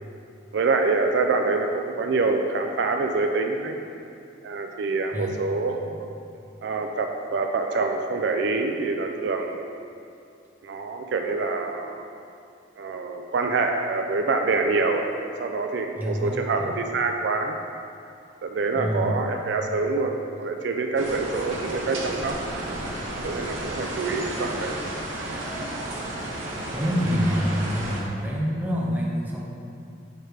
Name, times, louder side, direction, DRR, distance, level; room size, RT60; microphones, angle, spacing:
voice 1, 0.5-3.8 4.4-6.1 6.6-9.8 10.6-12.1 12.8-15.1 15.4-17.6 18.4-22.4 23.2-24.8, right 3 dB, 65° right, 4 dB, 0.3 m, -26 dB
voice 2, 16.0-16.7 18.7-19.2 24.1-24.2 26.7-29.4, equal, 10° right, -4 dB, 0.6 m, -27 dB
sound 1, 21.0-28.0, right 1 dB, 85° right, 1.1 m, -32 dB
6.6 x 3.3 x 4.5 m, 2.5 s
head